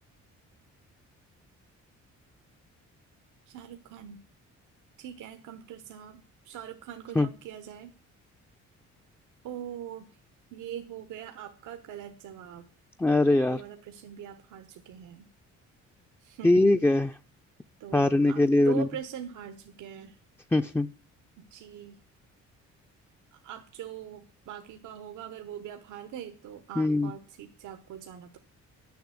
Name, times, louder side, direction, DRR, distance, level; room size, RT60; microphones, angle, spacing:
voice 1, 3.5-4.2 5.0-7.9 9.4-10.2 10.5-12.7 13.5-15.3 16.2-16.7 17.8-20.2 21.4-22.0 23.3-28.4, right 9 dB, 85° right, 7 dB, 1.1 m, -42 dB
voice 2, 13.0-13.6 16.4-17.1 17.9-18.9 20.5-20.9 26.8-27.1, left 2 dB, 5° left, 9 dB, 0.4 m, -22 dB
10.5 x 7.1 x 7.8 m, 0.38 s
cardioid pair, 90°, 30 cm